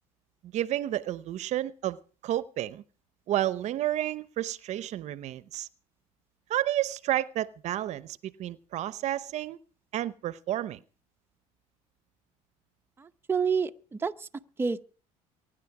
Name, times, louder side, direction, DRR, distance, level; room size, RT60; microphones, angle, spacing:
voice 1, 0.4-2.8 3.3-5.7 6.5-9.6 9.9-10.8, right 13 dB, 60° right, 0.8 m, -31 dB
voice 2, 13.0-14.3 14.6-14.8, right 5 dB, 15° right, 0.8 m, -29 dB
23.0 x 10.0 x 4.8 m
cardioid pair, 110°, 14 cm